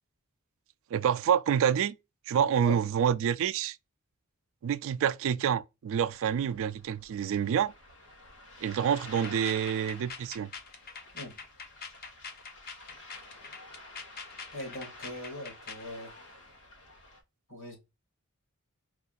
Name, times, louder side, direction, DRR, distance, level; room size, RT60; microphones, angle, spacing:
voice 1, 0.9-1.9 2.3-3.8 4.6-7.7 8.6-10.5, right 8 dB, 65° right, 0.3 m, -27 dB
Ocean, 5.9-17.2, left 2 dB, 85° left, 1.5 m, -50 dB
sound 1, 9.0-15.9, left 5 dB, 45° left, 0.7 m, -44 dB
voice 2, 14.5-16.1 17.5-17.8, equal, 65° left, 2.6 m, -40 dB
4.6 x 2.4 x 4.0 m
head